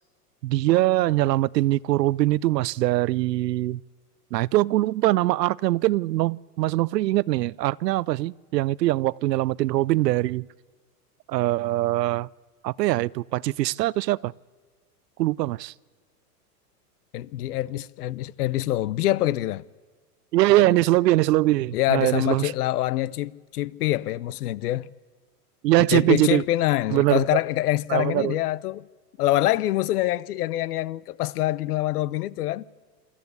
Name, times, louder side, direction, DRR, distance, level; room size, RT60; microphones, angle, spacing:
voice 1, 0.4-3.8 4.3-10.5 11.3-12.3 12.6-14.3 15.2-15.7 20.3-22.5 25.6-26.4 26.9-27.3 27.9-28.4, right 16 dB, 85° right, 0.6 m, -22 dB
voice 2, 17.1-19.6 20.6-20.7 21.7-24.9 25.9-28.9 29.2-32.7, left 15 dB, 70° left, 0.7 m, -25 dB
25.0 x 14.0 x 8.1 m
hypercardioid pair, 140°, 48 cm